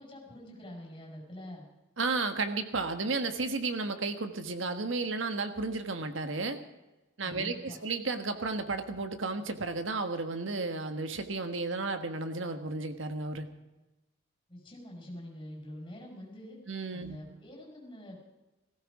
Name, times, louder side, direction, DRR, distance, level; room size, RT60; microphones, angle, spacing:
voice 1, 0.0-1.6 7.2-7.8 14.5-16.6 16.9-18.2, left 1 dB, 25° left, -2 dB, 5.2 m, -45 dB
voice 2, 2.0-6.6 7.2-13.4 16.7-17.2, right 3 dB, 80° right, 7 dB, 1.4 m, -33 dB
18.0 x 15.5 x 4.9 m, 1.1 s
head